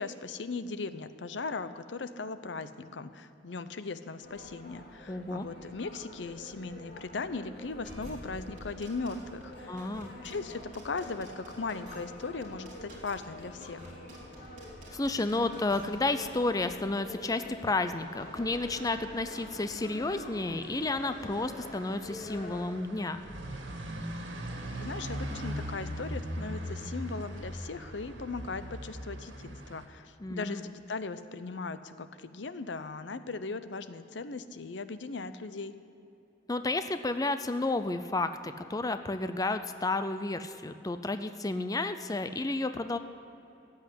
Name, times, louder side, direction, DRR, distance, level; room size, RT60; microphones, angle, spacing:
voice 1, 0.0-9.9 10.2-13.9 24.8-35.7, left 4 dB, 75° left, 12 dB, 0.7 m, -38 dB
sound 1, 4.2-22.7, left 1 dB, 55° left, 2.5 m, -47 dB
voice 2, 5.1-5.5 9.7-10.1 14.9-23.2 30.2-30.6 36.5-43.0, left 2 dB, 20° left, 10 dB, 0.5 m, -31 dB
sound 2, 7.8-16.4, right 1 dB, 45° right, 3.7 m, -50 dB
sound 3, 18.2-29.9, equal, 85° right, 2.1 m, -41 dB
14.5 x 8.1 x 10.0 m, 2.9 s
head